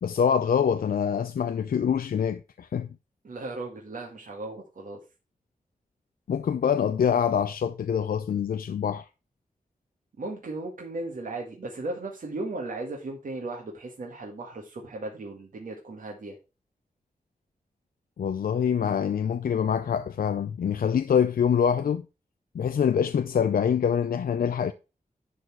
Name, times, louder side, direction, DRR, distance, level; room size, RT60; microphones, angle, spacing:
voice 1, 0.0-2.9 6.3-9.1 18.2-22.1 22.5-24.7, left 7 dB, 75° left, 0.5 m, -25 dB
voice 2, 3.2-5.0 10.2-16.4, right 2 dB, 65° right, 1.9 m, -36 dB
11.0 x 4.2 x 4.4 m
wide cardioid pair, 145°, 15 cm